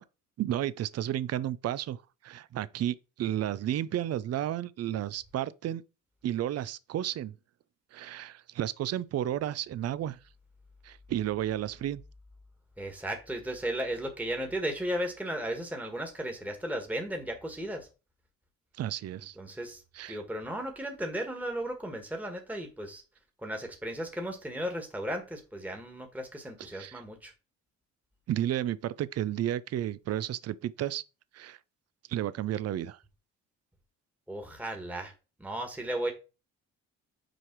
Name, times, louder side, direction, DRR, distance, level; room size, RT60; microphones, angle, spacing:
voice 1, 0.4-5.8 6.2-7.4 7.9-10.2 10.8-12.0 18.8-19.4 19.9-20.2 26.7-27.0 28.3-31.0 31.3-31.6 32.1-33.0, right 12 dB, 55° right, 0.5 m, -32 dB
voice 2, 12.8-17.9 19.4-19.8 20.1-23.0 23.4-27.3 34.3-35.1 35.4-36.1, right 1 dB, 5° right, 1.5 m, -35 dB
6.3 x 4.8 x 4.6 m
cardioid pair, 90°, 30 cm